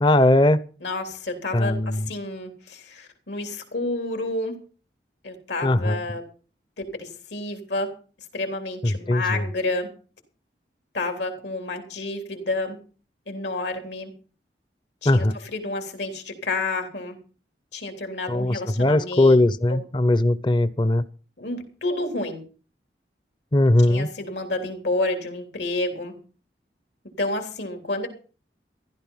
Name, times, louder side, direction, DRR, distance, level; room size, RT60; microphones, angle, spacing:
voice 1, 0.0-0.6 1.5-2.1 5.6-6.0 8.8-9.4 15.1-15.3 18.3-21.0 23.5-24.1, left 1 dB, 25° left, 0.6 m, -19 dB
voice 2, 0.8-4.6 5.2-6.2 7.0-7.9 8.3-9.9 10.9-12.8 13.3-14.1 15.0-17.2 17.7-19.4 19.7-19.8 21.4-22.4 23.9-26.1 27.2-28.1, left 2 dB, 80° left, 3.3 m, -30 dB
15.0 x 12.0 x 5.6 m
head